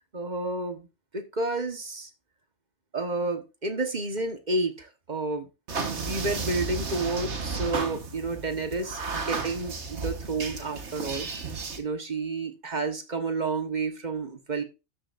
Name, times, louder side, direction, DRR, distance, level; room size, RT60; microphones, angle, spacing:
voice 1, 0.1-0.9 1.1-2.1 2.9-5.5 6.0-11.3 11.8-14.6, right 3 dB, 35° right, 6 dB, 1.4 m, -30 dB
sound 1, 5.7-11.8, right 4 dB, 60° right, 1.6 m, -33 dB
13.0 x 7.5 x 2.6 m, 0.28 s
omnidirectional pair, 1.3 m